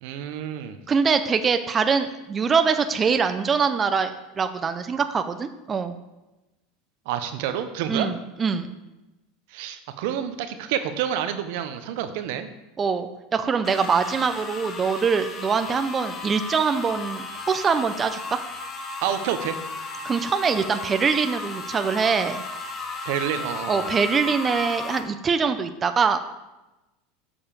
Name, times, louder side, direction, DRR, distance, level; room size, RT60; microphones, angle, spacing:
voice 1, 0.0-0.8 7.1-8.1 9.5-12.5 19.0-19.6 23.1-23.9, right 10 dB, 70° right, 9 dB, 0.8 m, -28 dB
voice 2, 0.9-6.0 7.9-8.7 12.8-18.4 20.0-22.4 23.7-26.2, right 5 dB, 25° right, 9 dB, 0.6 m, -23 dB
sound 1, 13.6-25.0, left 3 dB, 35° left, 1.2 m, -34 dB
6.8 x 5.5 x 6.8 m, 1.0 s
supercardioid pair, 115°, 0 cm